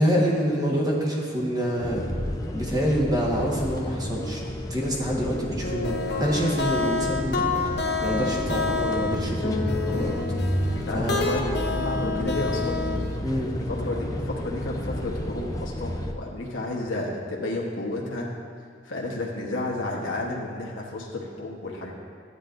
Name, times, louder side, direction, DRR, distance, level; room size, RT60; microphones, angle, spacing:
voice 1, 0.0-2.1 2.5-10.2 10.9-11.2 13.2-13.5, equal, 20° right, -3 dB, 1.3 m, -26 dB
sound 1, 1.8-16.1, left 1 dB, 20° left, 0.5 m, -32 dB
sound 2, 5.6-13.2, left 3 dB, 55° left, 0.8 m, -29 dB
voice 2, 10.7-12.9 13.7-18.3 18.8-21.9, left 2 dB, 85° left, -3 dB, 1.1 m, -31 dB
12.5 x 9.5 x 2.6 m, 2.1 s
head